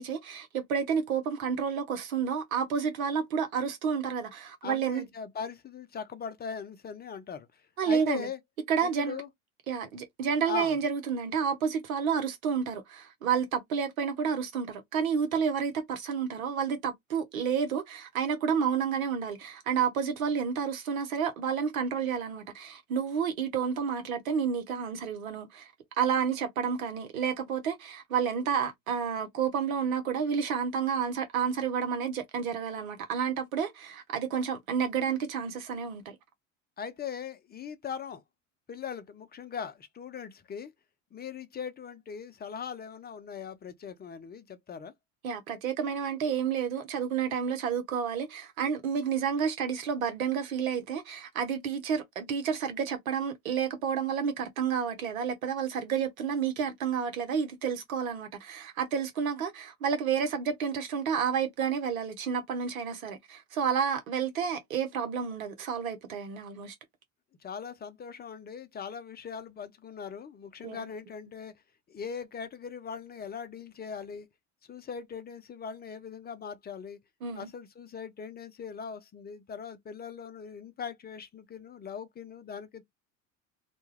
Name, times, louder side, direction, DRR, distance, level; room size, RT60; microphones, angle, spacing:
voice 1, 0.0-5.1 7.8-8.3 8.7-9.2 9.7-25.7 26.0-36.2 45.2-66.7 70.6-70.9 77.2-77.5, right 7 dB, 85° right, 0.8 m, -30 dB
voice 2, 4.6-8.4 8.8-9.3 10.5-10.8 36.8-38.2 38.7-40.7 41.1-44.9 67.4-71.5 71.9-74.3 74.7-77.0 77.3-82.8, left 7 dB, 25° left, 0.5 m, -40 dB
2.3 x 2.2 x 3.2 m
hypercardioid pair, 75°, 40 cm